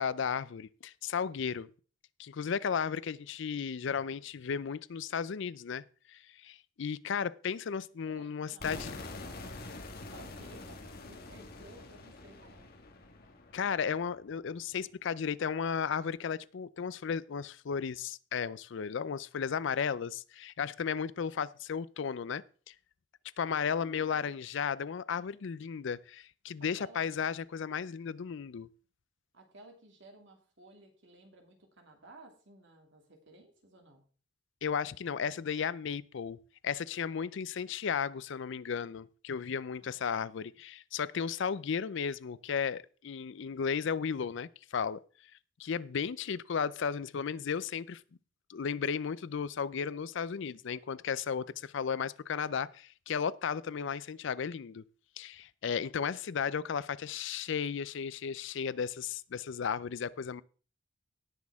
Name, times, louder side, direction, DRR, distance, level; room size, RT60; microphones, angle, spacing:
voice 1, 0.0-1.7 2.2-9.0 13.5-22.7 23.4-28.7 34.6-36.4 36.6-45.0 45.6-48.0 48.5-54.8 55.2-60.4, left 6 dB, 70° left, 0.4 m, -34 dB
voice 2, 8.1-9.1 10.1-12.7 23.6-24.4 26.8-27.1 29.3-34.0 39.8-40.4 46.2-46.3, right 2 dB, 65° right, 2.5 m, -56 dB
sound 1, 8.6-14.5, left 2 dB, 50° left, 1.5 m, -46 dB
18.0 x 6.2 x 3.5 m
head